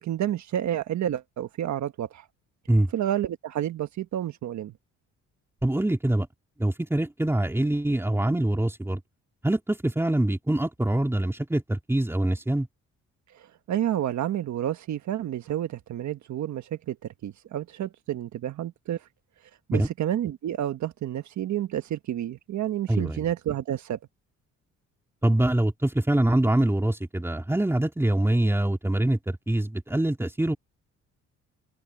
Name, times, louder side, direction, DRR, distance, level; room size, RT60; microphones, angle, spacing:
voice 1, 0.0-2.2 2.9-4.7 13.3-17.0 17.2-19.0 19.7-24.0, right 11 dB, 70° right, 1.3 m, -30 dB
voice 2, 5.6-6.3 6.6-9.0 9.4-12.7 19.7-19.9 22.9-23.2 25.2-30.6, right 1 dB, 10° right, 3.1 m, -24 dB
open air
cardioid pair, 90°, 30 cm